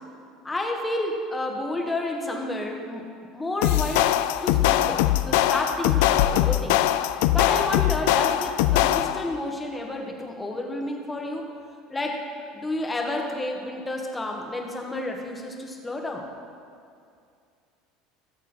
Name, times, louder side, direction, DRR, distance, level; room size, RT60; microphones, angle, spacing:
voice 1, 0.4-3.1 3.3-4.1 4.4-6.9 7.3-11.5 11.9-12.2 12.5-16.2, left 2 dB, 15° left, 1 dB, 1.5 m, -30 dB
sound 1, 3.6-9.3, left 14 dB, 80° left, 0.4 m, -22 dB
17.0 x 6.9 x 4.5 m, 2.4 s
supercardioid pair, 120°, 0 cm